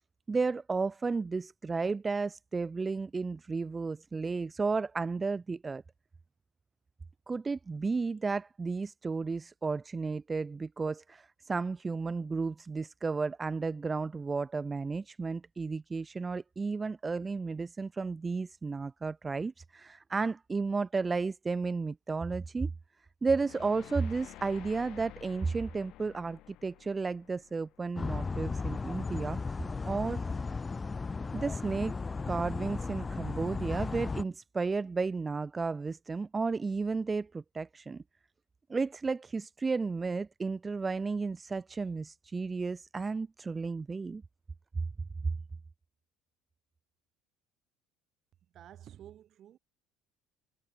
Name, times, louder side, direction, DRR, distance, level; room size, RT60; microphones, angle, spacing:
voice 1, 0.3-5.8 7.3-22.7 23.2-29.4 29.9-30.2 31.3-38.0 38.7-44.2, right 4 dB, 25° right, 0.3 m, -33 dB
sound 1, 23.4-28.5, left 15 dB, 60° left, 1.8 m, -51 dB
sound 2, 28.0-34.2, left 4 dB, 25° left, 0.6 m, -35 dB
voice 2, 48.5-49.6, right 11 dB, 50° right, 3.2 m, -51 dB
hypercardioid pair, 70°, 0 cm